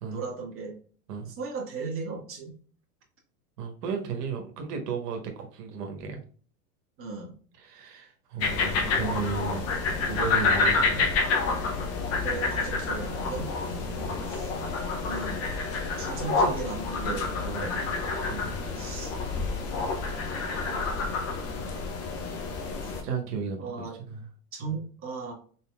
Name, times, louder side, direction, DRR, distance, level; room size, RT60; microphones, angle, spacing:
voice 1, 0.1-0.8 1.3-2.6 7.0-7.3 12.2-13.5 14.2-14.5 15.0-15.4 16.0-18.0 18.7-19.2 23.6-24.0 24.5-25.3, right 4 dB, 30° right, -2 dB, 1.5 m, -36 dB
voice 2, 3.6-6.2 7.6-11.1 13.7-14.2 17.4-17.7 18.3-18.6 23.0-24.3 24.6-24.7, right 5 dB, 85° right, 4 dB, 1.1 m, -35 dB
sound 1, 8.4-23.0, left 4 dB, 30° left, 0.9 m, -28 dB
4.2 x 3.8 x 2.2 m, 0.43 s
hypercardioid pair, 120°, 46 cm